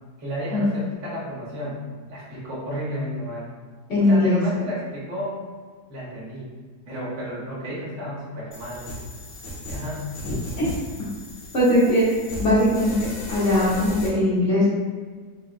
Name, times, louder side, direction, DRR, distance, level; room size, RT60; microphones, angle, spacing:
voice 1, 0.2-1.8 2.1-3.5 4.0-5.4 5.9-6.5 6.9-8.9 9.7-10.1, equal, 65° right, -8 dB, 1.9 m, -32 dB
voice 2, 3.9-4.4 10.2-10.7 11.5-12.1 12.4-14.7, left 1 dB, 50° left, -10 dB, 0.9 m, -20 dB
sound 1, 8.5-14.1, left 1 dB, 75° left, 0.5 m, -36 dB
6.2 x 2.3 x 2.3 m, 1.5 s
omnidirectional pair, 2.1 m